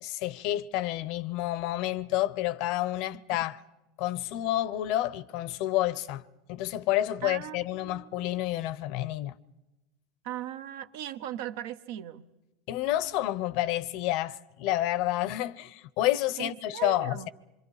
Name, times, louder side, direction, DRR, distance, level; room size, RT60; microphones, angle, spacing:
voice 1, 0.0-3.6 4.0-6.2 6.5-9.3 12.7-17.3, left 14 dB, 60° left, 0.7 m, -29 dB
voice 2, 7.2-8.3 10.2-12.3 16.4-17.3, right 12 dB, 75° right, 1.0 m, -38 dB
26.5 x 24.0 x 4.9 m
supercardioid pair, 125°, 0 cm